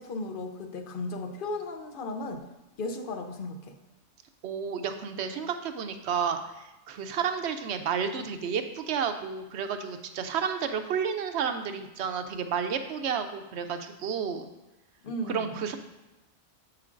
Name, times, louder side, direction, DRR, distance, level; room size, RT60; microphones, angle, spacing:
voice 1, 0.0-2.4 2.8-3.8 15.0-15.6, left 2 dB, 50° left, 5 dB, 0.8 m, -35 dB
voice 2, 4.4-14.5 15.3-15.8, right 7 dB, 65° right, 8 dB, 0.8 m, -31 dB
7.6 x 7.6 x 2.5 m, 1.0 s
omnidirectional pair, 1.3 m